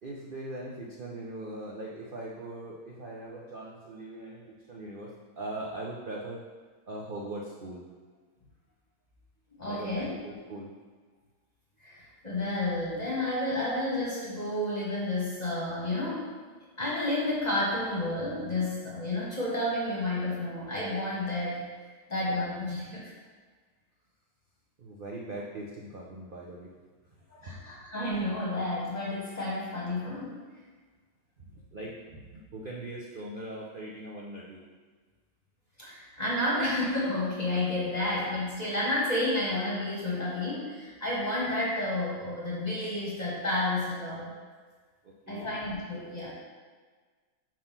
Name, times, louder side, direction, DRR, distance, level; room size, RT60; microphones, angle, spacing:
voice 1, 0.0-6.4 6.9-7.8 9.6-10.7 24.8-26.7 27.4-27.6 31.4-34.6 45.0-45.5, right 1 dB, 85° right, -3 dB, 0.4 m, -40 dB
voice 2, 9.6-10.1 11.8-16.3 16.8-21.7 22.1-23.0 27.3-30.4 35.8-44.3 45.3-46.3, left 1 dB, 30° left, -7 dB, 1.1 m, -31 dB
4.6 x 3.8 x 5.6 m, 1.5 s
omnidirectional pair, 1.8 m